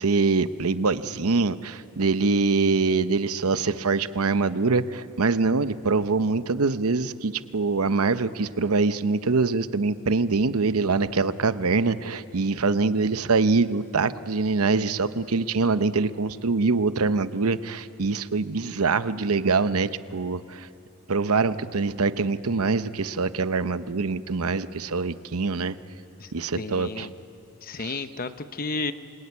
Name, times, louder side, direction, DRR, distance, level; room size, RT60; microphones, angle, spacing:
voice 1, 0.0-20.7 21.1-25.8 26.3-27.1 27.8-28.0, right 4 dB, 85° right, 12 dB, 0.8 m, -24 dB
voice 2, 26.2-27.1 27.6-28.9, left 3 dB, 40° left, 10 dB, 0.9 m, -32 dB
26.5 x 22.5 x 9.6 m, 2.7 s
head